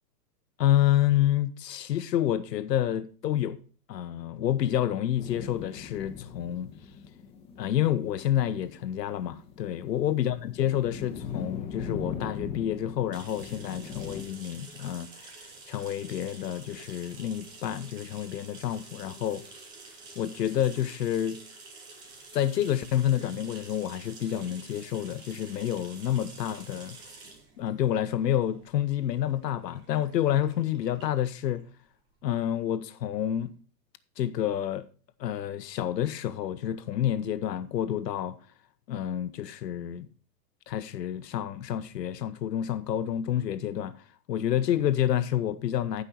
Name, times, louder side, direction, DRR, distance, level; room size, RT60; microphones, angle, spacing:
voice 1, 0.6-3.6 3.9-6.7 7.6-15.4 15.7-19.6 20.1-21.4 22.3-27.0 27.6-31.6 32.2-33.5 34.2-34.8 35.2-38.4 38.9-40.1 40.7-46.0, left 11 dB, 80° left, 1.2 m, -29 dB
sound 1, 5.2-14.2, left 6 dB, 10° left, 1.4 m, -40 dB
sound 2, 13.1-32.5, right 3 dB, 10° right, 0.5 m, -49 dB
14.5 x 5.7 x 4.3 m
hypercardioid pair, 160°, 49 cm